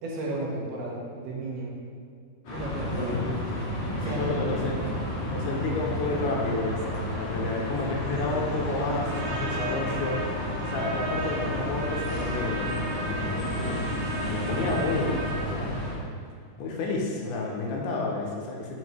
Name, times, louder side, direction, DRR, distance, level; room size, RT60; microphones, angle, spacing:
voice 1, 0.0-1.7 2.5-3.2 4.0-4.3 5.2-5.5, right 2 dB, 80° right, -3 dB, 2.9 m, -34 dB
sound 1, 2.4-15.9, left 1 dB, 65° left, 1.1 m, -32 dB
voice 2, 2.9-3.4 4.2-4.8 5.3-10.4 10.7-14.0 14.2-15.2 15.5-15.9 16.6-18.8, left 2 dB, 85° left, -1 dB, 2.8 m, -31 dB
Trumpet, 9.0-15.5, right 2 dB, 60° right, 1.8 m, -35 dB
7.7 x 5.1 x 3.2 m, 2.3 s
omnidirectional pair, 4.6 m